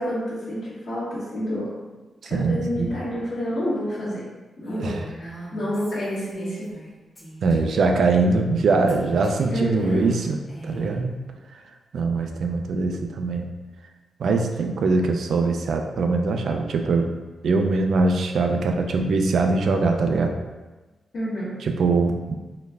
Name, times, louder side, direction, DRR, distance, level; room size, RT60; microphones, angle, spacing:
voice 1, 0.0-1.7 2.3-4.2 4.6-6.7 9.5-10.0 21.1-21.5, equal, 65° left, -15 dB, 1.5 m, -28 dB
voice 2, 2.2-2.9 4.8-5.1 7.4-10.4 10.6-11.1 11.5-11.6 11.9-13.5 14.2-17.1 17.4-20.3 21.6-22.3, right 3 dB, 70° right, 4 dB, 0.4 m, -22 dB
Female speech woman speaking, 4.6-6.9 7.2-7.9 8.9-11.0, right 2 dB, 30° left, 1.1 m, -41 dB
3.9 x 3.2 x 2.3 m, 1.2 s
cardioid pair, 85°, 0 cm